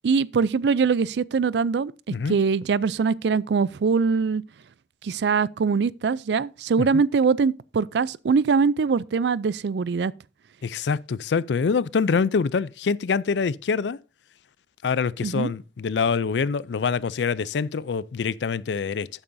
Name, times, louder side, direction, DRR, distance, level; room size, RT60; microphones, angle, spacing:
voice 1, 0.0-1.9 2.3-4.4 5.0-10.1 15.2-15.5, right 5 dB, 70° right, 0.4 m, -22 dB
voice 2, 10.6-14.0 14.8-19.1, left 5 dB, 80° left, 0.4 m, -25 dB
11.5 x 8.9 x 2.6 m
head